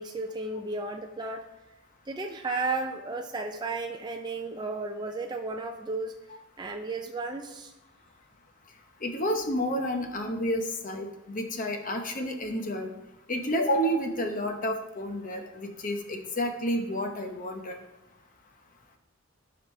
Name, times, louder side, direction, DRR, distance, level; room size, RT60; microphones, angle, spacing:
voice 1, 0.0-1.4 2.1-6.1 6.6-7.7, right 3 dB, 20° right, 3 dB, 0.4 m, -33 dB
voice 2, 9.0-12.9 13.3-17.8, equal, 35° left, 4 dB, 0.8 m, -30 dB
13.0 x 5.1 x 3.2 m, 0.93 s
head